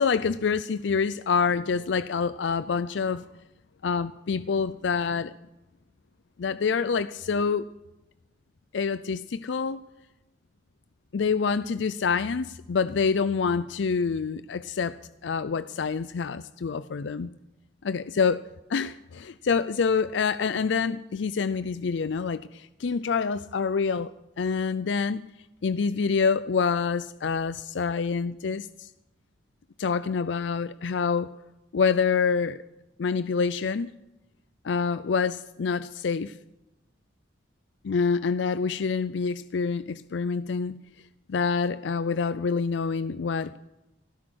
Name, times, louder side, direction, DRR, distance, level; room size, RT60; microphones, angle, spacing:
voice 1, 0.0-3.2 3.8-5.3 6.4-7.7 8.7-9.8 11.1-15.0 15.2-17.3 17.8-18.4 18.7-24.1 24.4-25.2 25.6-28.9 29.8-31.3 31.7-32.6 33.0-33.9 34.6-36.3 37.8-40.8 41.3-43.6, left 5 dB, 75° left, 0.5 m, -26 dB
16.5 x 10.5 x 7.9 m
head